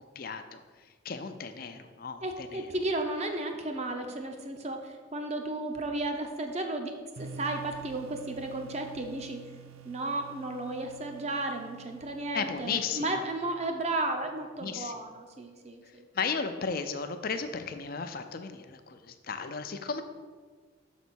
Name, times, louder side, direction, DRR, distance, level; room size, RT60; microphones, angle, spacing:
voice 1, 0.2-0.6 1.0-2.7 12.3-13.2 14.6-14.9 16.1-20.0, left 5 dB, 45° left, 8 dB, 0.5 m, -35 dB
voice 2, 2.2-6.9 7.2-9.4 9.8-16.0, right 2 dB, 30° right, 5 dB, 0.7 m, -34 dB
sound 1, 7.2-14.0, right 6 dB, 80° right, 0.7 m, -49 dB
6.6 x 4.1 x 6.2 m, 1.5 s
head